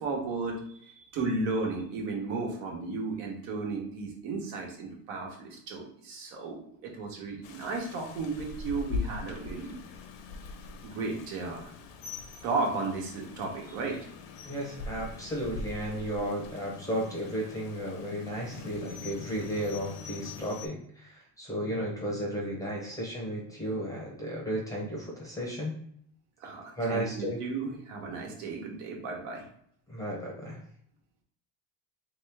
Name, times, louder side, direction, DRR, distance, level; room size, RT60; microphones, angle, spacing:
voice 1, 0.0-9.8 10.8-11.7 12.4-14.1 26.4-29.4, right 3 dB, 80° right, 0 dB, 1.3 m, -34 dB
Rain, 7.4-20.7, left 4 dB, 65° left, 0.7 m, -42 dB
voice 2, 14.4-25.8 26.8-27.4 29.9-30.6, right 1 dB, 5° left, -3 dB, 0.6 m, -34 dB
3.2 x 3.0 x 3.4 m, 0.66 s
cardioid pair, 160°, 48 cm